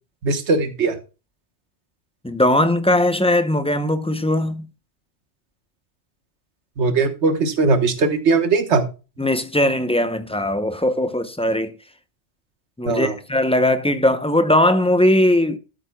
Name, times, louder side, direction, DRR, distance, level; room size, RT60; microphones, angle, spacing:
voice 1, 0.2-1.0 6.8-8.9 12.8-13.1, right 4 dB, 70° right, 1.5 m, -19 dB
voice 2, 2.2-4.7 9.2-11.7 12.8-15.6, left 1 dB, 10° left, 0.4 m, -19 dB
13.0 x 8.2 x 2.2 m
omnidirectional pair, 1.2 m